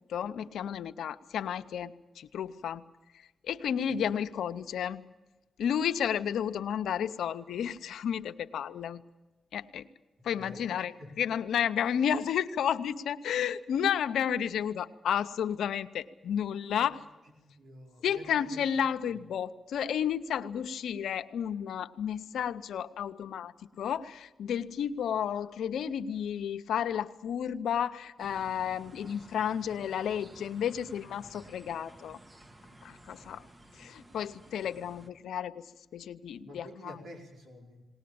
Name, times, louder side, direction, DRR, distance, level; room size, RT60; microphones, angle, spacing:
voice 1, 0.1-2.8 3.4-5.0 5.6-9.0 9.5-9.9 10.2-17.0 18.0-32.2 32.8-33.4 33.7-35.7 35.9-37.0, left 8 dB, 85° left, 11 dB, 0.7 m, -32 dB
voice 2, 10.2-11.2 16.7-16.9 17.4-18.6 36.4-37.8, left 1 dB, 80° right, 0 dB, 4.8 m, -49 dB
sound 1, 28.2-35.1, right 1 dB, 35° right, 1.7 m, -54 dB
20.0 x 19.0 x 8.6 m, 1.1 s
cardioid pair, 60°, 0 cm